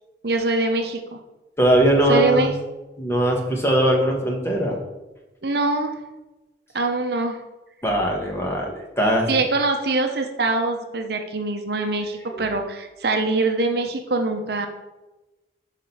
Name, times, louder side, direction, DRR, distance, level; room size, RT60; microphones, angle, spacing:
voice 1, 0.2-1.2 2.1-2.5 5.4-5.9 6.7-7.4 9.3-14.7, right 2 dB, 55° right, 4 dB, 0.7 m, -23 dB
voice 2, 1.6-2.5 3.0-4.8 7.8-9.3 12.3-12.4, right 1 dB, 15° left, 0 dB, 1.2 m, -20 dB
5.8 x 5.0 x 5.5 m, 1.1 s
head